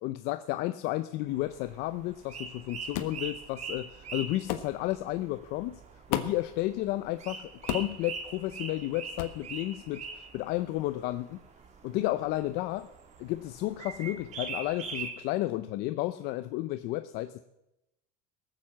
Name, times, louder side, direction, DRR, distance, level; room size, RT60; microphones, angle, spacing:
voice 1, 0.0-5.8 6.1-11.4 11.8-12.9 13.2-17.4, left 16 dB, 60° left, 11 dB, 0.7 m, -32 dB
sound 1, 1.3-15.1, right 5 dB, 35° right, 2.0 m, -43 dB
sound 2, 2.9-3.2 4.5-4.7 6.1-6.5 7.7-8.0 9.2-9.4, left 11 dB, 85° left, 1.4 m, -33 dB
18.5 x 7.5 x 7.5 m, 0.89 s
supercardioid pair, 130°, 19 cm